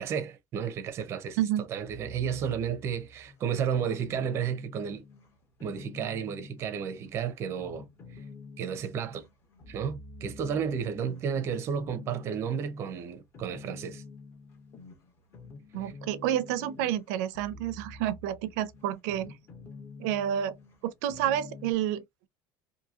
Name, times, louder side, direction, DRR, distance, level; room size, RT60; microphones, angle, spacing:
voice 1, 0.0-1.4 1.7-5.0 5.6-8.2 8.6-9.3 9.7-14.0 15.8-15.9, right 7 dB, 30° right, 0.5 m, -32 dB
sound 1, 1.9-21.7, left 3 dB, 30° left, 0.8 m, -48 dB
voice 2, 15.7-19.3 20.0-20.6 20.8-22.3, right 11 dB, 85° right, 0.4 m, -30 dB
2.8 x 2.6 x 2.4 m
cardioid pair, 180°, 9 cm